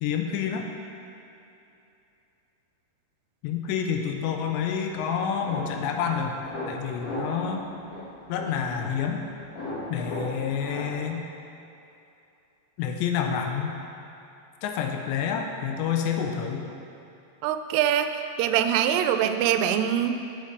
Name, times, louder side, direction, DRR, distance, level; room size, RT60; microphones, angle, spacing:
voice 1, 0.0-0.7 3.4-6.4 6.7-7.7 8.3-9.2 9.9-11.2 12.8-13.7 14.6-16.6, left 7 dB, 80° left, 3 dB, 2.6 m, -28 dB
sound 1, 4.9-11.0, left 1 dB, 60° left, 3.1 m, -37 dB
voice 2, 17.4-20.1, right 10 dB, 85° right, 8 dB, 3.1 m, -24 dB
8.2 x 8.0 x 4.8 m, 2.8 s
omnidirectional pair, 5.6 m